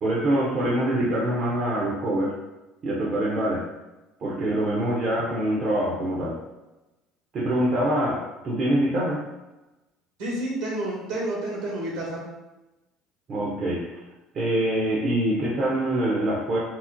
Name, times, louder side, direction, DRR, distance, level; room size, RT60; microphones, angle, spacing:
voice 1, 0.0-2.3 2.8-3.6 4.2-6.4 7.3-9.2 13.3-13.9 14.3-16.6, right 1 dB, 50° right, -5 dB, 0.8 m, -24 dB
voice 2, 10.2-12.2, right 1 dB, 75° right, -4 dB, 1.4 m, -29 dB
2.9 x 2.0 x 3.8 m, 1.0 s
hypercardioid pair, 70°, 0 cm